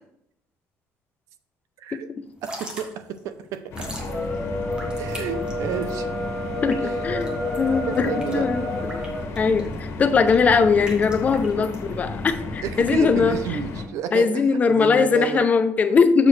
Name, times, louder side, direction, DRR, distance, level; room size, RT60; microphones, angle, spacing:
voice 1, 1.8-2.1 2.4-3.9 5.0-6.1 6.8-7.0 7.9-8.5 11.6-11.7 12.6-15.5, right 8 dB, 65° right, 11 dB, 0.6 m, -31 dB
Drip / Trickle dribble, 2.3-13.9, equal, 15° right, 1.4 m, -42 dB
sound 1, 3.7-13.9, left 3 dB, 50° left, 1.6 m, -33 dB
sound 2, 4.0-9.3, left 1 dB, ahead, 1.2 m, -30 dB
voice 2, 6.6-8.6 8.9-9.0 9.4-13.3 14.1-16.3, left 5 dB, 25° left, 9 dB, 0.6 m, -20 dB
7.2 x 6.6 x 3.2 m, 0.79 s
cardioid pair, 160°, 6 cm